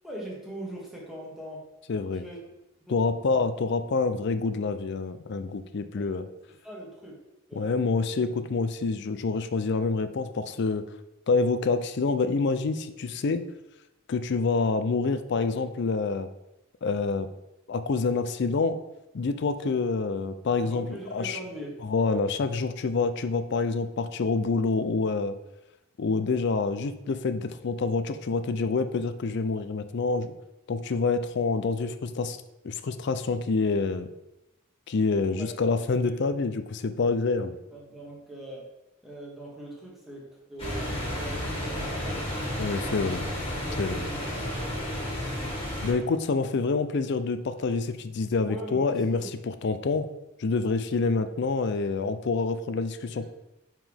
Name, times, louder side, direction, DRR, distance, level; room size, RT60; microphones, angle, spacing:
voice 1, 0.0-1.6 2.1-2.4 2.9-3.0 3.3-3.4 5.9-6.1 6.6-7.2 7.5-7.8 20.6-21.8 35.3-35.5 37.7-38.7 39.0-43.1 43.6-44.9 48.5-49.3 49.7-49.8 53.1-53.3, right 1 dB, ahead, -4 dB, 1.2 m, -41 dB
voice 2, 1.9-2.2 2.9-6.3 7.5-10.8 11.3-13.4 14.1-16.3 16.8-17.3 17.7-18.8 19.1-20.8 21.1-21.4 21.8-25.4 26.0-30.3 30.7-32.4 32.6-34.1 34.9-37.6 42.6-43.2 43.8-44.0 45.8-50.1 50.4-53.3, left 4 dB, 55° left, 11 dB, 0.4 m, -27 dB
sound 1, 40.6-45.9, left 1 dB, 25° left, 1.7 m, -32 dB
5.6 x 5.0 x 3.5 m, 0.91 s
head